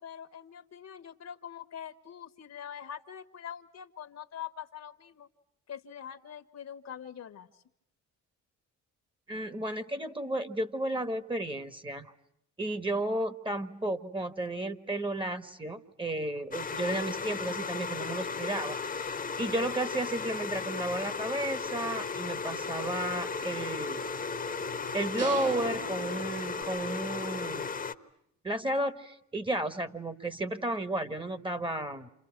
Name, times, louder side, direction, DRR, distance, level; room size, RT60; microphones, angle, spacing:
voice 1, 0.0-5.3 5.7-7.5, left 9 dB, 60° left, 10 dB, 1.4 m, -44 dB
voice 2, 9.3-12.1 12.6-24.0 24.9-27.7 28.4-32.1, right 1 dB, 15° right, 11 dB, 1.5 m, -33 dB
sound 1, 16.5-27.9, left 5 dB, 30° left, 1.2 m, -35 dB
Telephone, 21.6-26.6, right 2 dB, 75° right, 4.5 m, -46 dB
sound 2, 25.2-27.0, right 4 dB, 60° right, 2.8 m, -39 dB
29.5 x 28.5 x 6.0 m, 0.77 s
cardioid pair, 90°, 30 cm